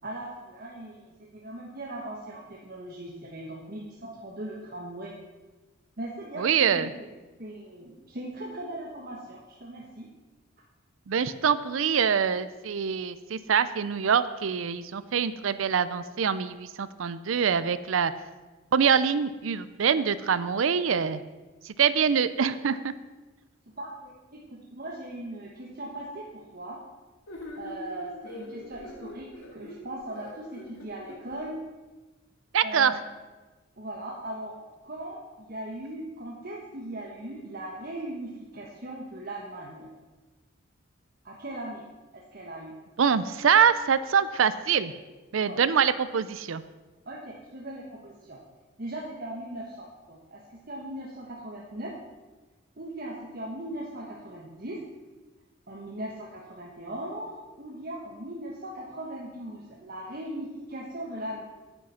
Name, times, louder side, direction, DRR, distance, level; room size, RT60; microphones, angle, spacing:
voice 1, 0.0-5.1 6.0-7.1 7.4-10.1 23.7-26.8 27.6-29.3 29.5-31.6 32.6-33.0 33.8-39.9 41.2-41.8 42.1-42.7 45.4-45.6 47.0-48.4 48.8-51.9 52.8-54.8 55.7-61.4, right 1 dB, 50° right, -3 dB, 1.3 m, -39 dB
voice 2, 6.4-6.9 11.1-18.1 18.7-21.2 21.6-22.9 32.5-32.9 43.0-44.9 45.3-46.6, right 7 dB, 80° right, 14 dB, 0.5 m, -24 dB
sound 1, 27.3-31.4, left 1 dB, 90° left, 2.0 m, -43 dB
9.8 x 8.5 x 5.7 m, 1.2 s
head